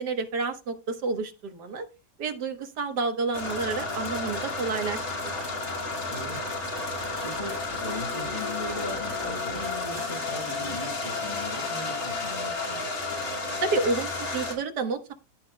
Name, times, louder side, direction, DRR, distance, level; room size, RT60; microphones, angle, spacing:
voice 1, 0.0-1.9 2.2-5.3 13.6-15.1, right 4 dB, 90° right, 7 dB, 1.8 m, -30 dB
sound 1, 3.3-14.6, left 3 dB, 60° left, 2.7 m, -32 dB
voice 2, 6.1-6.4 7.0-12.9, left 1 dB, 40° left, 0 dB, 4.4 m, -39 dB
15.0 x 6.4 x 2.2 m, 0.30 s
omnidirectional pair, 1.7 m